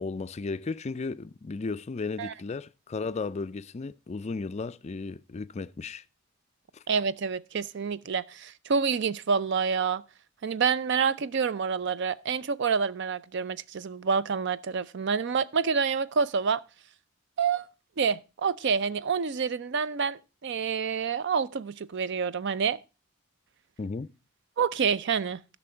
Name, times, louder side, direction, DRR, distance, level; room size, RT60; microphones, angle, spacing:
voice 1, 0.0-6.0 6.7-6.8 23.8-24.1, left 4 dB, 35° left, 0.4 m, -34 dB
voice 2, 6.9-10.0 10.4-16.6 17.4-17.7 18.0-22.8 24.6-25.4, right 6 dB, 55° right, 0.5 m, -28 dB
12.0 x 6.1 x 4.4 m
head